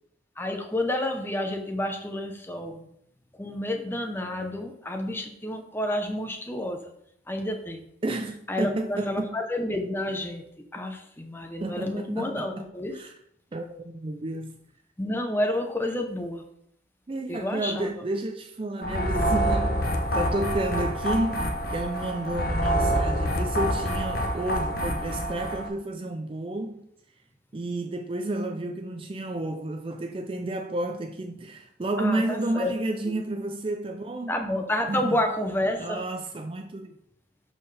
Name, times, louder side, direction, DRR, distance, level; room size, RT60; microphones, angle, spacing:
voice 1, 0.4-2.9 3.4-6.8 7.3-7.8 8.5-10.4 10.7-13.0 15.0-16.4 17.3-17.9 32.0-32.7 33.1-33.2 34.3-36.0, left 1 dB, 10° left, 0.8 m, -29 dB
voice 2, 8.0-9.4 11.6-13.1 13.5-14.6 17.1-26.8 27.5-34.4 34.9-35.2 35.8-36.9, right 2 dB, 25° right, 0.4 m, -31 dB
sound 1, 18.8-25.7, equal, 50° left, 0.9 m, -27 dB
12.0 x 4.5 x 3.3 m
head